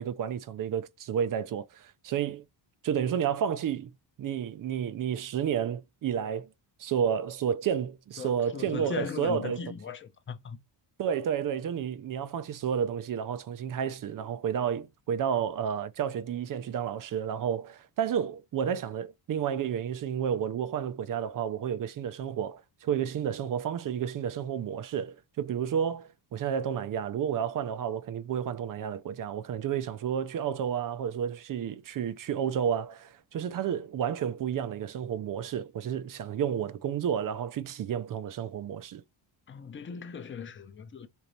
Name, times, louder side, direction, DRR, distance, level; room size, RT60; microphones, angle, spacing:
voice 1, 0.0-2.4 2.8-3.9 4.2-6.5 6.8-9.6 11.0-39.0, right 8 dB, 45° right, 0.5 m, -31 dB
voice 2, 8.2-10.6 39.5-41.1, left 6 dB, 25° left, 0.7 m, -38 dB
4.5 x 4.0 x 5.2 m
cardioid pair, 165°, 47 cm